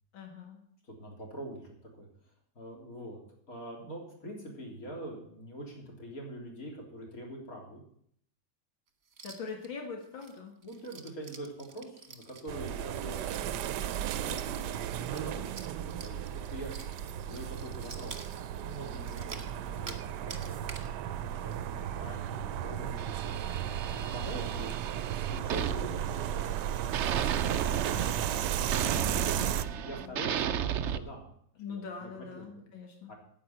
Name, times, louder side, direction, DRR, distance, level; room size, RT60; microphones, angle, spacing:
voice 1, 0.1-0.7 9.2-10.5 28.9-29.6 30.0-30.1 31.6-33.1, left 5 dB, 90° left, 3 dB, 2.4 m, -42 dB
voice 2, 0.9-2.1 2.6-3.2 3.5-7.8 10.6-13.5 14.1-16.7 17.2-18.3 18.6-20.9 21.4-23.4 23.9-24.7 25.3-29.2 29.8-31.3 31.7-32.1 32.6-32.7 33.1-33.2, right 1 dB, 45° left, -1 dB, 3.8 m, -44 dB
sound 1, 9.1-9.7 10.0-20.0 20.3-20.9 21.3-21.4 21.7-22.0 22.3-22.4 22.9-23.1, right 4 dB, 35° right, 1.4 m, -49 dB
sound 2, 12.5-29.6, right 10 dB, 70° right, 1.1 m, -35 dB
sound 3, 23.0-26.6 26.9-31.0, right 9 dB, 85° right, 0.6 m, -34 dB
10.0 x 9.1 x 7.9 m, 0.67 s
omnidirectional pair, 2.1 m